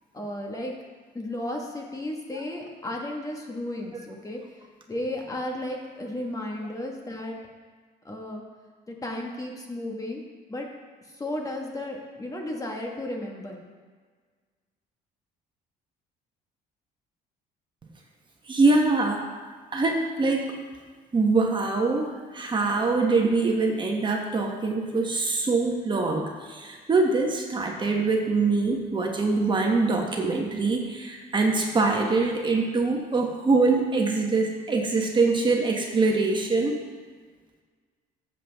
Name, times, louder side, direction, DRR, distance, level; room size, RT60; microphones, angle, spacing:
voice 1, 0.1-0.7 1.1-4.4 4.9-7.4 8.0-8.4 8.9-10.2 10.5-10.7 11.2-13.6, left 1 dB, 20° left, 0 dB, 1.6 m, -34 dB
voice 2, 18.5-19.2 19.7-20.5 21.1-36.7, right 3 dB, 30° right, 1 dB, 1.2 m, -24 dB
13.5 x 7.8 x 3.5 m, 1.5 s
cardioid pair, 110°, 17 cm